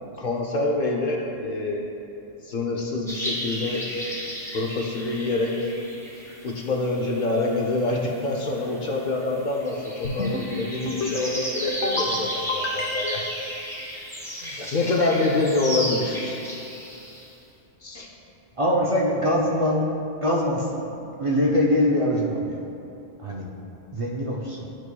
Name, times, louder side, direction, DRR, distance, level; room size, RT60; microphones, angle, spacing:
voice 1, 0.2-1.9 2.4-3.9 4.5-5.6 6.4-13.3 14.4-16.4 17.8-18.1, left 2 dB, 55° left, -1 dB, 0.6 m, -26 dB
sound 1, 3.1-17.3, equal, 5° left, 1.0 m, -34 dB
sound 2, 10.0-10.5 10.9-11.3 11.7-12.1 12.5-13.3, left 3 dB, 80° left, 1.0 m, -29 dB
voice 2, 18.6-19.8 20.2-20.8 21.2-22.6 23.2-23.5 23.9-24.7, equal, 50° right, -3 dB, 0.4 m, -23 dB
9.6 x 4.6 x 2.2 m, 2.8 s
omnidirectional pair, 1.2 m